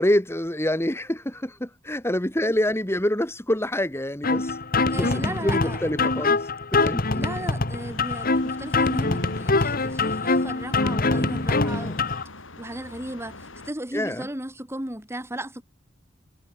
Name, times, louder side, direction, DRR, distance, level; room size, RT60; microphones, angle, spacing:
voice 1, 0.0-7.0 13.9-14.3, left 1 dB, 15° left, 3.0 m, -26 dB
sound 1, 4.2-12.2, left 3 dB, 50° left, 2.2 m, -24 dB
voice 2, 4.9-5.8 7.1-12.1 12.6-15.6, right 1 dB, 15° right, 4.2 m, -35 dB
sound 2, 7.8-13.7, left 3 dB, 75° left, 5.3 m, -44 dB
head